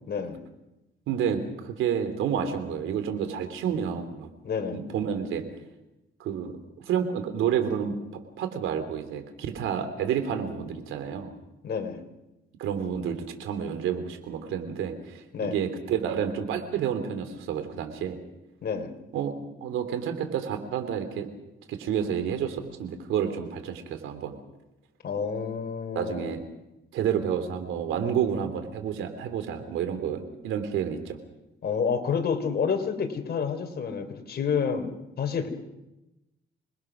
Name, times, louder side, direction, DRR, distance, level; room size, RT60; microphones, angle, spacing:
voice 1, 0.1-0.4 4.4-4.8 11.6-12.0 15.3-15.6 18.6-18.9 25.0-26.4 31.6-35.5, left 6 dB, 55° left, 5 dB, 3.6 m, -29 dB
voice 2, 1.1-4.3 4.7-5.4 6.2-6.5 6.9-11.3 12.6-15.2 15.5-18.2 19.1-21.3 21.7-24.4 25.9-26.4 26.9-31.2, right 8 dB, 90° right, 8 dB, 3.1 m, -30 dB
27.5 x 20.5 x 6.2 m, 0.96 s
cardioid pair, 90°, 20 cm